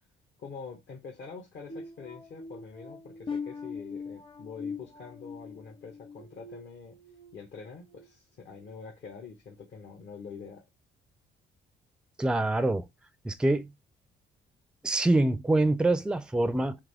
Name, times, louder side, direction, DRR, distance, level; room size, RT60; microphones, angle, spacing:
voice 1, 0.4-6.9 7.3-10.6, left 5 dB, 65° left, 1.1 m, -45 dB
sound 1, 1.7-7.3 7.8-8.1 8.6-8.8, left 5 dB, 25° left, 0.7 m, -41 dB
voice 2, 12.2-12.9 13.2-13.7 14.8-16.8, right 2 dB, 5° right, 0.4 m, -25 dB
3.6 x 3.2 x 3.4 m
cardioid pair, 90°, 20 cm